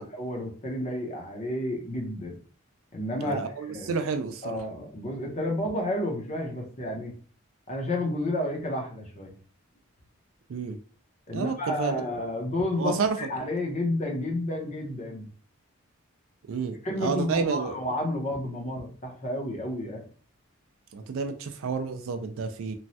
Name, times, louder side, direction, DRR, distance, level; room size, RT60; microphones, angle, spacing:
voice 1, 0.0-2.3 2.9-3.9 4.4-7.1 7.7-9.3 11.3-15.3 16.8-20.0, left 1 dB, 30° left, 0 dB, 0.7 m, -31 dB
voice 2, 3.2-4.6 10.5-10.8 11.3-12.0 12.8-13.3 16.5-17.7 20.9-22.7, right 5 dB, 65° right, 7 dB, 0.3 m, -30 dB
3.1 x 2.2 x 2.7 m, 0.40 s
head